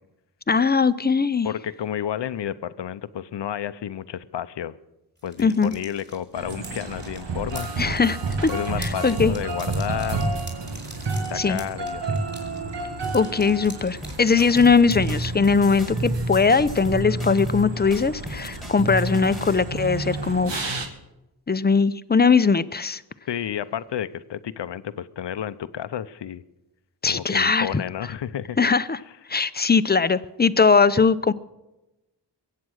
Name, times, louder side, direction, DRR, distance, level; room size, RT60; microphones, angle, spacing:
voice 1, 0.5-1.5 5.4-5.7 7.8-8.2 8.8-9.3 11.3-11.6 13.1-20.8 21.5-23.0 27.0-27.8 28.6-29.0 29.3-31.3, left 5 dB, 25° left, 14 dB, 0.6 m, -20 dB
voice 2, 1.4-4.8 5.2-7.7 8.5-10.3 11.1-12.2 23.3-26.4 27.1-28.6, left 10 dB, 85° left, 14 dB, 0.7 m, -31 dB
sound 1, 5.2-15.3, right 1 dB, 25° right, 4.4 m, -45 dB
sound 2, 6.3-20.9, right 2 dB, 90° right, 1.8 m, -30 dB
sound 3, 14.0-14.8 15.1-17.6 17.9-19.6, left 1 dB, ahead, 2.3 m, -38 dB
22.0 x 8.6 x 6.4 m, 0.98 s
wide cardioid pair, 75°, 42 cm